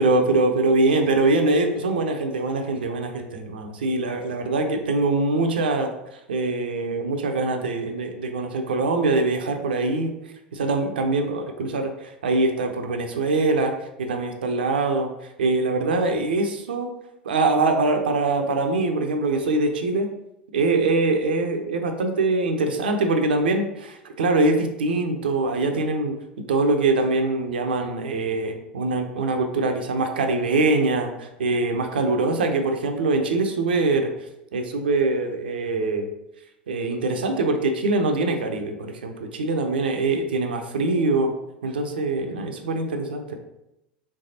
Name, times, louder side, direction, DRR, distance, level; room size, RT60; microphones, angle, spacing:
voice 1, 0.0-5.9 6.3-10.1 10.5-13.7 14.0-15.1 15.4-16.9 17.2-20.1 20.5-26.1 26.5-34.1 34.5-36.1 36.7-41.3 41.6-43.4, right 2 dB, 75° right, 5 dB, 0.5 m, -23 dB
3.4 x 3.3 x 2.7 m, 0.88 s
hypercardioid pair, 85°, 5 cm